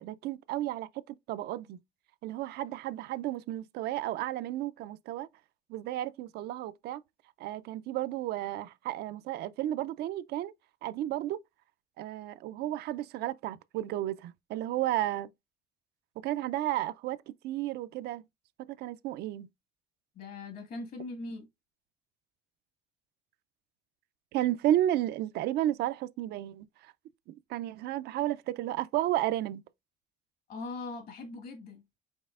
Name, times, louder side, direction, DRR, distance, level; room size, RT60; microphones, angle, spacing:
voice 1, 0.0-1.8 2.2-5.3 5.7-7.0 7.4-10.5 10.8-11.4 12.0-15.3 16.2-18.2 18.7-19.5 24.3-26.9 27.5-29.6, right 13 dB, 75° right, 0.4 m, -32 dB
voice 2, 20.2-21.5 30.5-31.8, left 3 dB, 60° left, 1.7 m, -40 dB
5.3 x 4.2 x 2.4 m
cardioid pair, 110°, 17 cm